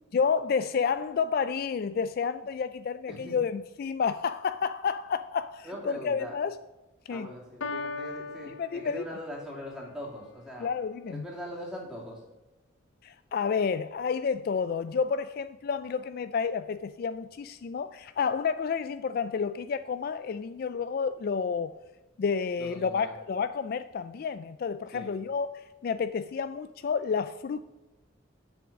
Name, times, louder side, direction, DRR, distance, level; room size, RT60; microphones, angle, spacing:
voice 1, 0.1-6.6 7.1-7.3 8.5-9.0 10.6-11.3 13.0-21.7 22.2-27.6, left 6 dB, 50° left, 0.3 m, -30 dB
voice 2, 5.6-6.4 7.1-10.7 11.1-12.2 22.6-23.1 24.9-25.2, equal, 5° right, 2.5 m, -41 dB
Piano, 7.6-9.6, left 3 dB, 70° left, 0.8 m, -38 dB
7.8 x 6.3 x 5.9 m
head